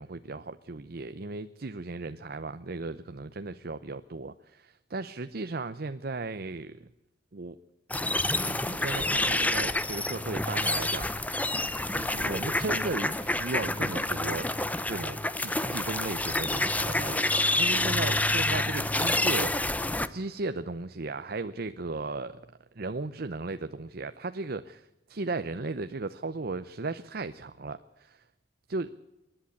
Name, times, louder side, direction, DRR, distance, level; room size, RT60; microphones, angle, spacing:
voice 1, 0.0-6.9 7.3-7.6 8.0-11.5 11.9-14.5 14.8-19.6 20.1-22.4 22.7-28.2 28.7-28.9, right 3 dB, 60° right, 10 dB, 0.8 m, -36 dB
sound 1, 7.9-20.1, left 2 dB, 10° left, 0.8 m, -28 dB
27.5 x 11.0 x 8.5 m, 1.0 s
head